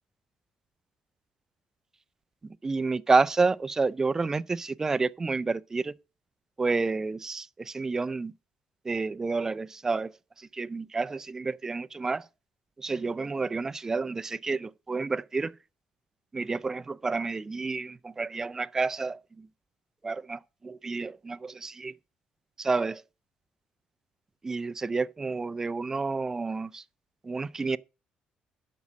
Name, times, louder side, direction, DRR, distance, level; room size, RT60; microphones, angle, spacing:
voice 1, 2.6-5.9 6.6-8.3 8.8-10.1 10.4-12.3 12.8-15.5 16.3-19.5 20.0-21.9 22.6-23.0 24.4-26.8 27.2-27.8, right 4 dB, 20° right, 0.4 m, -29 dB
8.1 x 6.2 x 7.3 m
cardioid pair, 130°, 3 cm